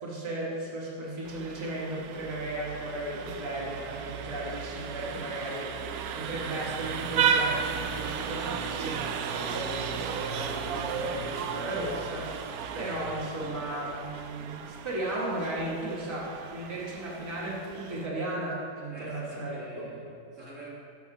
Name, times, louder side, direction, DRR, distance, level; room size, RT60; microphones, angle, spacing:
voice 1, 0.0-5.7 6.1-9.0 9.3-12.3 12.7-19.9, right 1 dB, 15° right, -6 dB, 1.7 m, -35 dB
Vehicle horn car horn honking, 1.2-18.1, right 7 dB, 70° right, 1.0 m, -34 dB
voice 2, 18.9-20.7, right 2 dB, 50° right, -6 dB, 1.8 m, -45 dB
8.2 x 6.1 x 5.5 m, 2.3 s
omnidirectional pair, 1.8 m